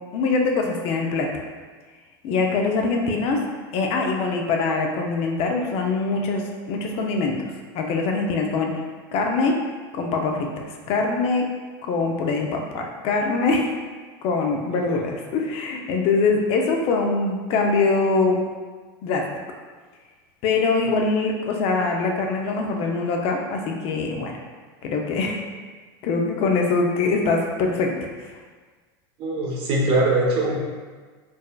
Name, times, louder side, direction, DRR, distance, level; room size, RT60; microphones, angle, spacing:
voice 1, 0.1-1.3 2.2-3.4 3.7-7.4 7.7-8.8 9.1-9.5 9.9-11.5 11.8-13.7 14.2-18.4 19.0-19.2 20.4-24.3 24.8-25.4 26.0-28.3, left 3 dB, 50° left, 1 dB, 0.5 m, -23 dB
voice 2, 29.2-30.6, right 2 dB, 45° right, -3 dB, 1.0 m, -22 dB
4.4 x 3.1 x 2.3 m, 1.4 s
supercardioid pair, 120°, 13 cm